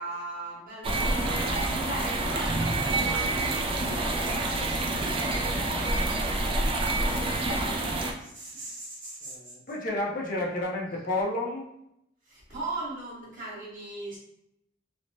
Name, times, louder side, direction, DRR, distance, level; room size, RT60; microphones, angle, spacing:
voice 1, 0.0-3.3 4.2-5.2 8.2-9.5 12.2-14.2, right 2 dB, 50° right, -7 dB, 1.3 m, -39 dB
sound 1, 0.8-8.1, right 2 dB, 30° right, 0.3 m, -27 dB
voice 2, 3.2-4.5 9.2-11.7, left 2 dB, 50° left, -2 dB, 0.5 m, -35 dB
3.1 x 2.1 x 2.6 m, 0.80 s
head